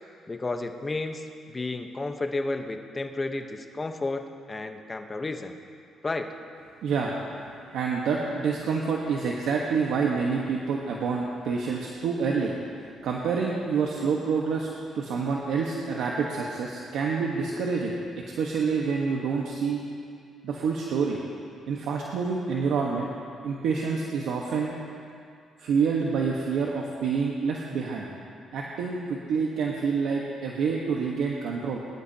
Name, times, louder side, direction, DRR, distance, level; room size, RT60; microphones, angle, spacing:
voice 1, 0.3-4.2 4.5-5.6 6.0-6.3, left 2 dB, 25° left, 5 dB, 1.1 m, -32 dB
voice 2, 6.8-7.2 7.7-14.7 14.9-17.9 18.4-19.8 20.4-21.2 21.7-23.1 23.4-24.7 25.6-28.1 28.5-31.8, right 5 dB, 80° right, -2 dB, 1.3 m, -27 dB
22.5 x 12.0 x 2.9 m, 2.4 s
cardioid pair, 90°, 0 cm